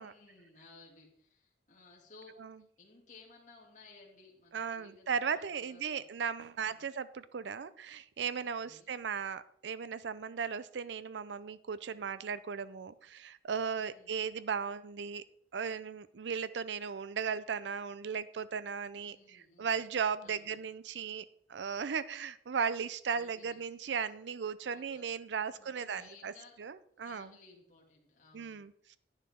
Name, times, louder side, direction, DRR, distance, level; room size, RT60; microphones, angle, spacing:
voice 1, 0.0-2.3 2.8-6.0 6.6-6.8 8.4-9.0 13.8-14.1 19.1-19.8 20.2-20.5 23.1-23.6 24.7-26.6 27.0-28.6, left 3 dB, 45° left, -2 dB, 2.5 m, -58 dB
voice 2, 4.5-15.2 15.5-26.3 26.6-27.3 28.3-29.0, right 6 dB, 75° right, 16 dB, 0.5 m, -37 dB
10.5 x 9.7 x 3.6 m, 0.64 s
head